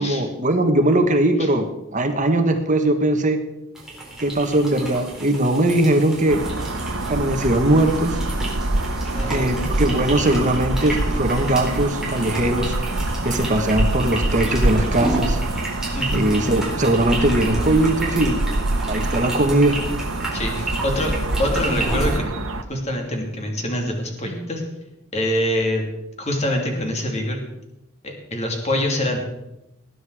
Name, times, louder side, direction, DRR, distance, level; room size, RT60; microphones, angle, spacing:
voice 1, 0.0-1.7 1.9-3.4 4.2-6.4 7.1-8.2 9.3-12.7 13.2-15.4 16.1-18.4 18.9-19.8, right 1 dB, 35° right, 6 dB, 1.4 m, -20 dB
sound 1, 3.7-22.2, right 2 dB, ahead, 4.4 m, -32 dB
sound 2, 6.3-22.6, right 1 dB, 80° right, 1.2 m, -25 dB
voice 2, 9.1-9.6 15.9-16.2 20.3-22.2 22.7-24.6 25.1-25.8 26.2-27.4 28.0-29.2, left 1 dB, 30° left, 2 dB, 2.8 m, -25 dB
19.5 x 9.8 x 4.9 m, 0.90 s
head